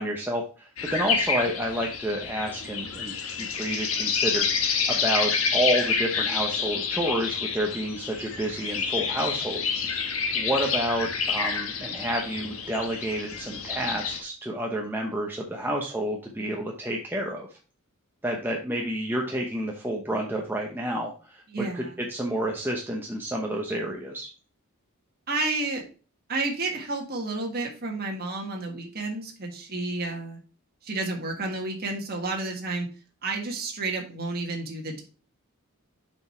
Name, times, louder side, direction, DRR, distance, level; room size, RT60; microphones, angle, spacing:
voice 1, 0.0-4.5 4.9-9.6 10.3-17.5 18.2-24.3, right 1 dB, 10° right, -1 dB, 0.8 m, -29 dB
sound 1, 0.8-14.2, left 6 dB, 70° left, 1.3 m, -28 dB
voice 2, 21.5-22.0 25.3-25.8 26.3-30.4 30.8-32.9 33.2-35.0, right 3 dB, 45° right, 0 dB, 1.6 m, -31 dB
6.6 x 4.8 x 4.4 m, 0.37 s
head